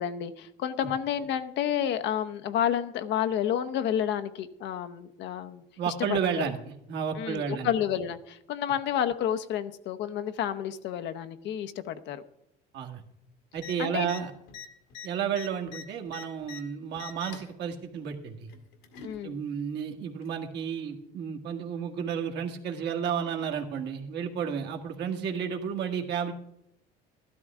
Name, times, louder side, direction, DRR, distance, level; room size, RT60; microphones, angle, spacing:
voice 1, 0.0-6.5 7.2-12.2 13.8-14.1 19.0-19.4, left 9 dB, 65° left, 10 dB, 0.8 m, -30 dB
voice 2, 5.8-6.6 6.9-7.7 12.7-13.0 13.5-14.3 15.0-18.5 19.2-26.3, right 7 dB, 60° right, 4 dB, 1.8 m, -32 dB
opening small safe, 13.6-13.7 14.0-14.2 14.5-16.6 16.9-17.5 18.5-19.2 20.2-20.3, left 7 dB, 85° left, 2.0 m, -43 dB
13.0 x 12.5 x 3.6 m, 0.81 s
supercardioid pair, 100°, 20 cm